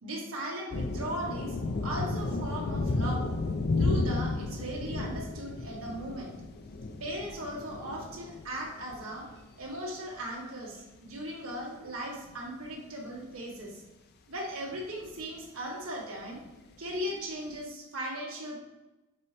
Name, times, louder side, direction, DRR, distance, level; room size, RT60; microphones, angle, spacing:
voice 1, 0.0-3.3 3.8-6.4 7.0-9.3 9.6-13.8 14.3-16.4 16.8-18.6, right 1 dB, 70° right, -3 dB, 1.9 m, -38 dB
sound 1, 0.7-9.7 10.1-10.2 12.3-12.4 14.7-14.8 15.0-15.1 16.3-16.4 17.1-17.2, left 2 dB, 50° left, 0.5 m, -32 dB
6.7 x 4.2 x 3.4 m, 1.0 s
head